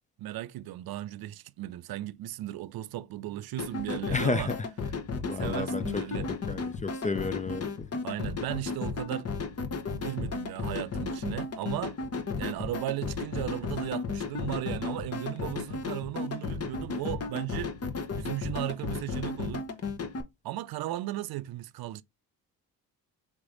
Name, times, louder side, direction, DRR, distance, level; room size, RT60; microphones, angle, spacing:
voice 1, 0.2-4.5 5.3-6.3 8.0-9.3 9.9-12.0 12.4-17.7 18.2-19.7 20.4-22.0, right 15 dB, 55° right, 0.5 m, -36 dB
sound 1, 3.6-20.2, left 4 dB, 35° left, 1.0 m, -34 dB
voice 2, 4.1-4.6 5.2-7.9, left 4 dB, 20° left, 0.4 m, -32 dB
3.6 x 3.2 x 3.8 m
hypercardioid pair, 55°, 43 cm